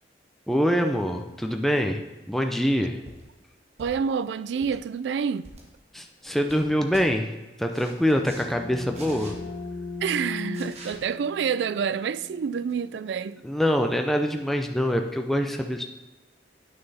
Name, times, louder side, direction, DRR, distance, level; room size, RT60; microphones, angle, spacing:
voice 1, 0.5-2.0 2.3-3.0 5.9-7.3 7.6-9.3 13.4-15.8, equal, ahead, 0.5 m, -24 dB
sound 1, 3.0-3.2 3.8-4.1 4.5-4.8 5.4-5.7 6.1-6.6 6.9-7.1 7.7-8.5 8.9-9.4 10.5-11.0 12.7-12.8, right 2 dB, 35° right, 1.5 m, -46 dB
voice 2, 3.8-5.5 10.0-13.4, right 6 dB, 75° right, 0.3 m, -28 dB
sound 2, 7.7-13.2, left 3 dB, 85° left, 1.0 m, -39 dB
9.1 x 6.4 x 4.1 m
head